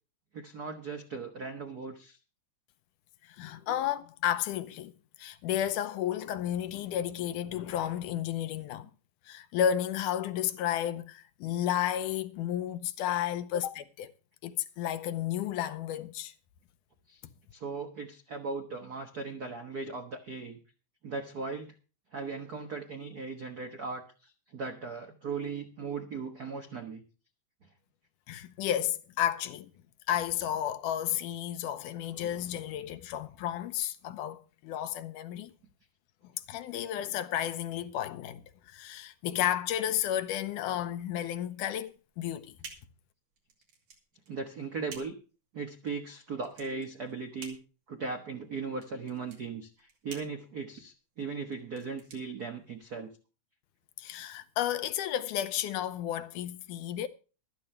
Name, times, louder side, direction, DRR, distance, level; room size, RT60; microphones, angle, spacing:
voice 1, 0.3-2.2 17.1-17.2 17.5-20.6 21.0-21.7 22.1-27.0 27.6-27.7 44.3-45.1 45.5-47.6 47.9-53.1, right 4 dB, 55° right, 1.0 m, -38 dB
voice 2, 3.3-4.9 5.2-8.9 9.3-14.1 14.4-16.3 28.3-29.7 30.1-35.5 36.5-42.6 54.0-57.1, left 11 dB, 90° left, 2.3 m, -32 dB
sound 1, 41.8-53.1, right 5 dB, 80° right, 4.1 m, -52 dB
15.0 x 12.5 x 3.3 m
omnidirectional pair, 3.6 m